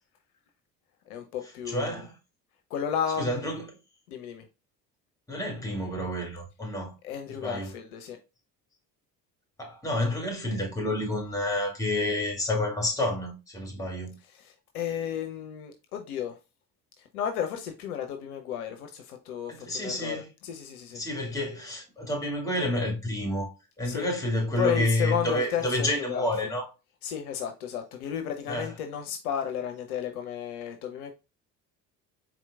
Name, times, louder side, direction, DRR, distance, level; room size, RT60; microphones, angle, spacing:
voice 1, 1.1-2.1 2.7-3.5 4.1-4.5 7.0-8.2 14.2-16.4 17.0-21.0 23.8-24.1 24.6-26.3 27.0-31.1, left 9 dB, 65° left, 0.6 m, -33 dB
voice 2, 1.7-2.1 3.2-3.6 5.3-6.9 7.4-7.7 9.6-14.1 19.5-20.3 20.9-26.7 28.5-28.7, left 1 dB, 5° left, 2.1 m, -29 dB
4.3 x 3.8 x 2.3 m
figure-of-eight pair, 55°, 48 cm